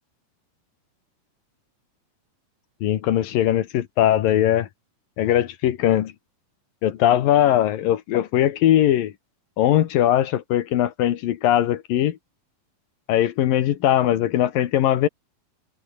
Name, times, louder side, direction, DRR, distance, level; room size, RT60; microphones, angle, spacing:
voice 1, 2.8-4.7 5.2-6.1 6.8-9.1 9.6-12.2 13.1-15.1, left 12 dB, 75° left, 3.0 m, -20 dB
omnidirectional pair, 4.2 m